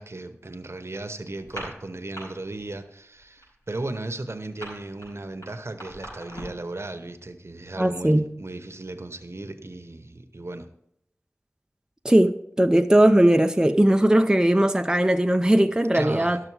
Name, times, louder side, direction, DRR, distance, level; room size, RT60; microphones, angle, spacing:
voice 1, 0.0-10.7 15.9-16.4, right 2 dB, 65° right, 0.9 m, -36 dB
sound 1, 1.4-2.2 2.6-2.9 3.1-6.7, equal, 90° left, 4.9 m, -40 dB
voice 2, 7.8-8.3 12.0-16.4, right 1 dB, 15° right, 0.5 m, -19 dB
12.5 x 6.5 x 4.7 m
wide cardioid pair, 40°, 5 cm